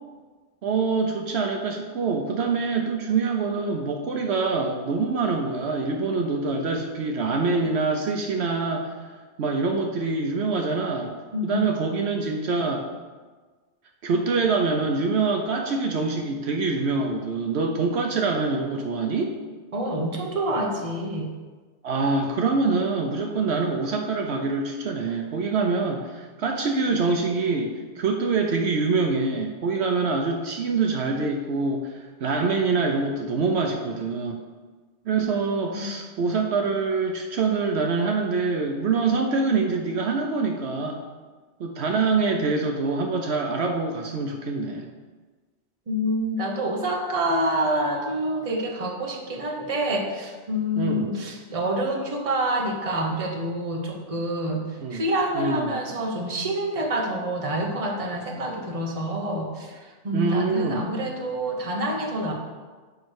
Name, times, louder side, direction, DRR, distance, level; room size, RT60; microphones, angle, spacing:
voice 1, 0.6-11.1 11.4-12.8 14.0-19.3 21.8-34.4 35.1-41.0 41.6-44.9 50.8-51.1 54.8-55.0 55.3-55.8 60.1-60.9, right 4 dB, 70° right, 2 dB, 0.9 m, -25 dB
voice 2, 11.3-11.9 19.7-21.3 35.7-35.9 45.9-62.3, right 1 dB, 30° right, 1 dB, 1.0 m, -27 dB
9.5 x 3.2 x 6.3 m, 1.4 s
omnidirectional pair, 1.2 m